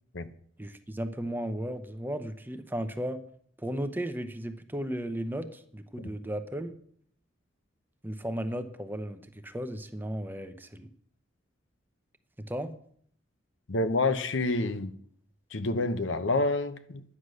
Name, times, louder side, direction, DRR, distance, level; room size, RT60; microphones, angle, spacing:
voice 1, 0.6-3.2 3.6-6.7 8.0-10.9 12.5-12.7, right 1 dB, 10° right, 0.8 m, -35 dB
voice 2, 13.7-14.9 15.5-17.0, left 2 dB, 75° left, 0.9 m, -28 dB
11.0 x 9.9 x 6.4 m
head